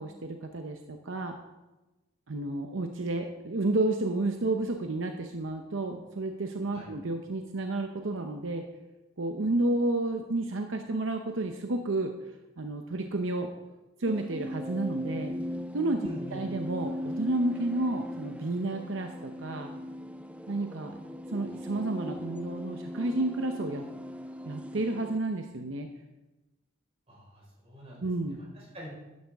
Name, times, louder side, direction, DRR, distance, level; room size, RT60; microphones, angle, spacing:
voice 1, 0.0-1.3 2.3-8.6 9.2-12.1 12.6-13.5 14.0-15.4 15.7-19.7 20.5-20.9 21.3-23.9 24.5-25.9 28.0-28.4, right 2 dB, 75° right, 5 dB, 0.8 m, -31 dB
sound 1, 14.1-25.2, left 1 dB, 5° right, 0.4 m, -39 dB
voice 2, 16.0-16.4 27.1-28.9, equal, 30° right, -4 dB, 4.7 m, -45 dB
12.5 x 10.5 x 3.5 m, 1.1 s
head